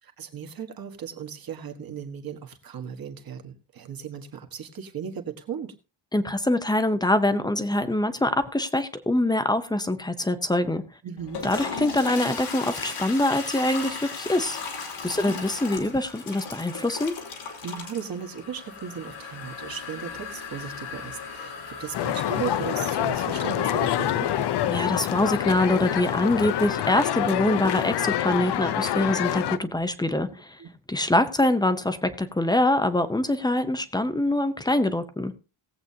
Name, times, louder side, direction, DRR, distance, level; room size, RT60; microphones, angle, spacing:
voice 1, 0.0-5.7 11.0-11.4 15.2-15.4 17.6-24.3 30.6-30.7, right 8 dB, 45° right, 4 dB, 1.6 m, -36 dB
voice 2, 6.1-10.8 11.4-14.6 15.0-17.2 24.7-30.3 30.9-35.3, left 1 dB, 10° left, 10 dB, 0.7 m, -24 dB
Toilet flush, 11.2-27.9, left 5 dB, 75° left, 3.1 m, -38 dB
sound 1, 21.9-29.6, left 11 dB, 55° left, 0.6 m, -26 dB
18.5 x 8.0 x 2.8 m, 0.31 s
wide cardioid pair, 180°, 50 cm